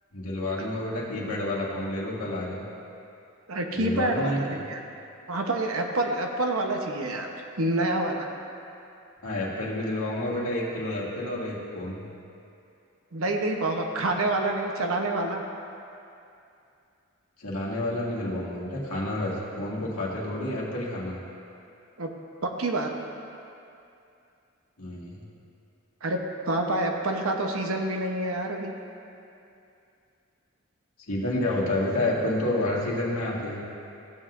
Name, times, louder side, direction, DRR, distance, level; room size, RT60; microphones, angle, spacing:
voice 1, 0.1-2.6 3.7-4.6 9.2-12.0 17.4-21.2 24.8-25.2 31.1-33.6, left 1 dB, 85° left, -5 dB, 1.8 m, -29 dB
voice 2, 3.5-4.8 5.3-7.3 7.6-8.3 13.1-15.4 22.0-22.1 22.4-22.9 26.0-28.7, right 2 dB, 75° right, 2 dB, 0.9 m, -27 dB
15.0 x 7.9 x 2.5 m, 2.6 s
head